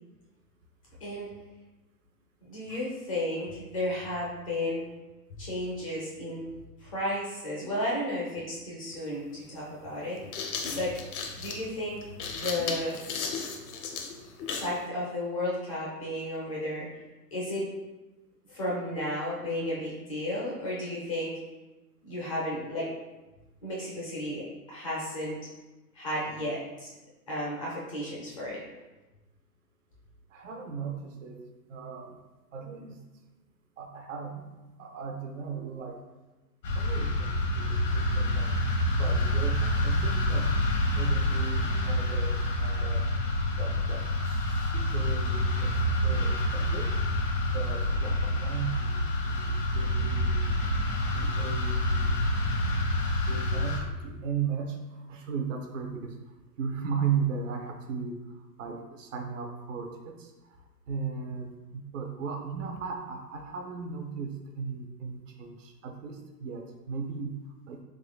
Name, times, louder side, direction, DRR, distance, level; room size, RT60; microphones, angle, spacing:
voice 1, 2.4-4.8 5.3-6.5 6.8-10.2 10.7-10.9 11.3-12.9 14.5-16.9 17.3-17.7 18.5-21.3 22.0-22.9 23.6-25.4 25.9-26.9 27.3-28.6, left 1 dB, 25° left, -6 dB, 0.4 m, -33 dB
sound 1, 8.9-9.0 10.0-14.8, left 5 dB, 60° left, 0.7 m, -35 dB
voice 2, 30.3-31.4 31.7-32.2 32.5-33.0 33.8-34.5 34.8-36.0 36.7-38.5 39.0-40.5 40.9-43.0 43.6-45.7 46.0-46.9 47.4-50.5 51.1-52.2 53.3-54.8 55.1-56.1 56.6-58.2 58.6-60.3 60.9-67.3 67.7-67.8, right 6 dB, 50° right, 2 dB, 0.5 m, -36 dB
sound 2, 36.6-53.8, left 1 dB, 80° left, 1.2 m, -27 dB
3.7 x 2.9 x 2.3 m, 1.1 s
hypercardioid pair, 120°, 49 cm